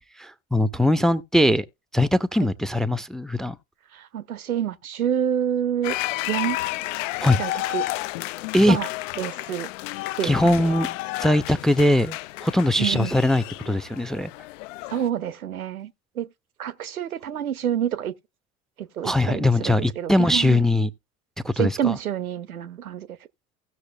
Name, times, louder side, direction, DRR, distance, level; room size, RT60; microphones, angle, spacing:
voice 1, 0.2-1.6 1.9-3.5 7.2-7.4 8.5-8.8 10.2-10.9 11.2-14.3 19.0-20.9 21.4-21.9, left 1 dB, ahead, 0.5 m, -21 dB
voice 2, 3.9-6.0 6.3-6.6 7.4-7.9 8.7-8.9 9.2-9.7 10.2-10.7 12.8-13.1 14.9-16.3 16.6-18.1 18.8-20.6 21.6-23.1, right 9 dB, 85° right, 0.8 m, -28 dB
sound 1, 5.8-15.1, left 18 dB, 60° left, 0.5 m, -32 dB
16.5 x 6.4 x 2.2 m
hypercardioid pair, 75°, 42 cm